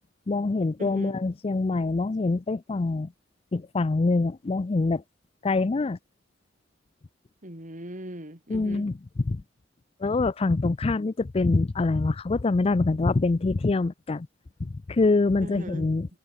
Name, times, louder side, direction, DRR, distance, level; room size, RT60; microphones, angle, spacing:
voice 1, 0.3-3.1 3.5-5.0 5.4-6.0 8.5-8.9 9.3-9.4 10.0-14.3 14.6-16.1, left 3 dB, 30° left, 0.4 m, -25 dB
voice 2, 0.8-1.2 7.4-8.9 15.4-15.9, right 1 dB, 40° right, 6.3 m, -40 dB
head